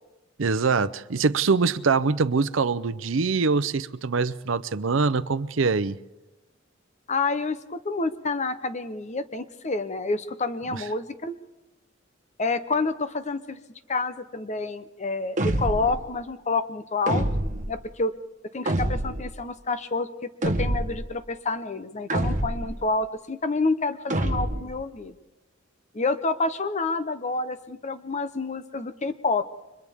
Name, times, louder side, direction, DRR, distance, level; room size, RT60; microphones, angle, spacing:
voice 1, 0.4-6.0 10.7-10.8, right 4 dB, 75° right, 0.6 m, -24 dB
voice 2, 7.1-11.4 12.4-13.6 13.9-17.2 17.7-18.1 18.5-20.1 20.4-25.1 25.9-29.4, left 3 dB, 35° left, 0.9 m, -28 dB
sound 1, 15.4-16.0 17.1-17.7 18.7-19.3 20.4-21.1 22.1-22.8 24.1-24.8, right 1 dB, 40° right, 1.4 m, -26 dB
30.0 x 24.0 x 3.6 m
head